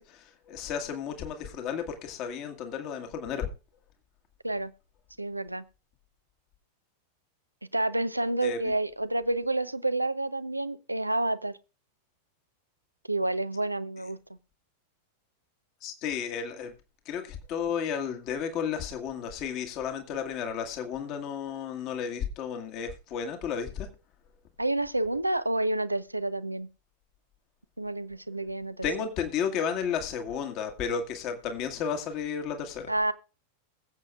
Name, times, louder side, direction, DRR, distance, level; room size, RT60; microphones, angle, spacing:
voice 1, 0.0-3.5 8.4-8.7 15.8-16.7 17.1-23.9 28.8-32.9, left 7 dB, 40° left, 1.7 m, -33 dB
voice 2, 5.2-5.6 7.7-11.5 13.1-14.2 24.6-26.7 27.8-28.9 32.9-33.1, right 2 dB, 85° right, 0.6 m, -29 dB
22.0 x 7.7 x 2.4 m
figure-of-eight pair, 90°, 0 cm